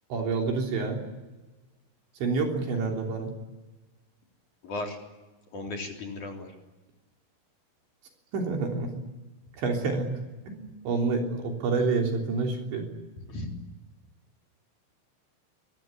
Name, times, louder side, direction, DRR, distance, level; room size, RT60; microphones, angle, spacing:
voice 1, 0.1-1.0 2.2-3.3 8.3-8.9 9.6-10.2 10.5-12.9, right 4 dB, 65° right, 2 dB, 5.6 m, -28 dB
voice 2, 4.6-5.0 5.5-6.5 13.3-13.5, left 2 dB, 40° left, 2 dB, 4.6 m, -35 dB
26.0 x 23.5 x 9.2 m, 1.2 s
omnidirectional pair, 5.8 m